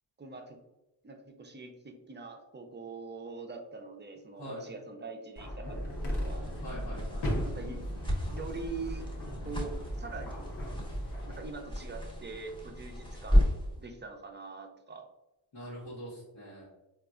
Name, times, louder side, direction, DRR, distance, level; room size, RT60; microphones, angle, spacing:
voice 1, 0.2-0.6 1.0-6.4 7.4-7.8 8.3-9.1 9.4-10.4 11.2-13.4 13.8-15.1, right 4 dB, 25° right, 4 dB, 0.4 m, -43 dB
sound 1, 5.4-11.4, equal, 60° left, 1.0 m, -37 dB
sound 2, 5.7-13.8, equal, 10° left, 0.7 m, -33 dB
voice 2, 6.6-7.5 15.5-16.7, equal, 85° left, -9 dB, 1.2 m, -44 dB
3.9 x 2.4 x 2.3 m, 1.0 s
cardioid pair, 85°, 45 cm